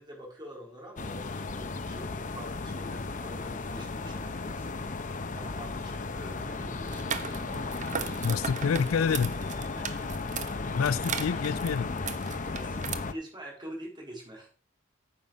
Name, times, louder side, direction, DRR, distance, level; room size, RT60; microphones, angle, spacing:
voice 1, 0.0-7.1 9.7-10.1 12.5-14.5, equal, 20° right, 4.0 m, -46 dB
sound 1, 1.0-13.1, left 3 dB, 40° left, 0.7 m, -35 dB
Bowed string instrument, 6.3-10.5, right 1 dB, 5° left, 2.9 m, -50 dB
sound 2, 6.8-12.9, right 6 dB, 40° right, 0.8 m, -38 dB
voice 2, 8.2-9.4 10.7-11.9, left 6 dB, 85° left, 0.4 m, -27 dB
9.6 x 6.2 x 5.2 m
head